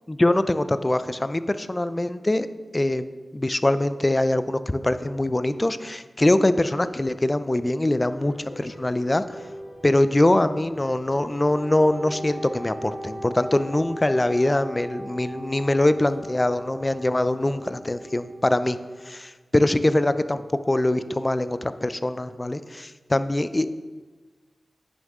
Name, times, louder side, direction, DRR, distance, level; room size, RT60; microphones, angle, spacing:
voice 1, 0.2-2.5 2.7-3.1 3.3-9.2 9.8-18.8 19.0-23.7, left 1 dB, 30° left, 12 dB, 0.5 m, -23 dB
sound 1, 8.0-18.3, equal, 70° left, 2.2 m, -47 dB
Wind instrument woodwind instrument, 11.4-19.1, right 1 dB, 80° right, 1.3 m, -39 dB
10.0 x 6.3 x 3.6 m, 1.3 s
cardioid pair, 40°, 0 cm